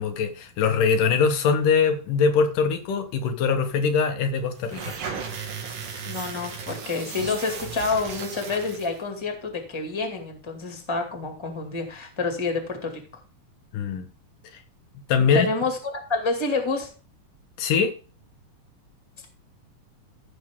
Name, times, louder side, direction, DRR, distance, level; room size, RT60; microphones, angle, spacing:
voice 1, 0.0-4.9 13.7-14.1 15.1-15.5 17.6-17.9, left 5 dB, 90° left, 6 dB, 2.9 m, -22 dB
sound 1, 4.6-9.0, right 6 dB, 85° right, 3.6 m, -35 dB
voice 2, 6.0-12.9 15.3-16.9, left 4 dB, 10° left, 4 dB, 1.7 m, -28 dB
14.5 x 6.5 x 3.7 m, 0.36 s
omnidirectional pair, 3.6 m